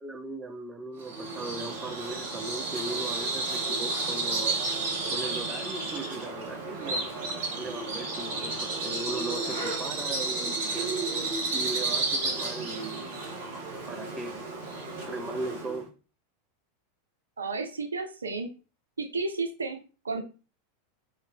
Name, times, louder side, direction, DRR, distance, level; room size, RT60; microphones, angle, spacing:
voice 1, 0.0-4.6 5.1-10.6 11.5-13.2 13.9-14.4 15.0-15.9, right 2 dB, 15° right, 6 dB, 0.4 m, -38 dB
Bird vocalization bird call bird song, 1.0-15.8, right 3 dB, 60° right, 0.9 m, -32 dB
voice 2, 17.4-18.5 19.0-19.8 20.0-20.2, right 3 dB, 80° right, 7 dB, 0.3 m, -32 dB
2.6 x 2.0 x 3.5 m, 0.35 s
figure-of-eight pair, 90°, 0 cm